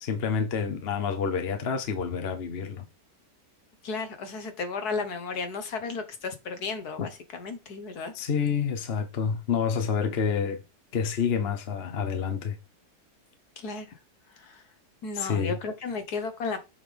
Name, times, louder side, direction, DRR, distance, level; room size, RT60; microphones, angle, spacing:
voice 1, 0.0-2.9 8.1-10.6 10.9-12.6 15.1-15.6, left 6 dB, 40° left, 1.0 m, -28 dB
voice 2, 3.8-8.1 13.6-14.0 14.3-14.6 15.0-16.6, left 4 dB, 60° left, 1.7 m, -34 dB
7.3 x 5.7 x 3.4 m
omnidirectional pair, 1.9 m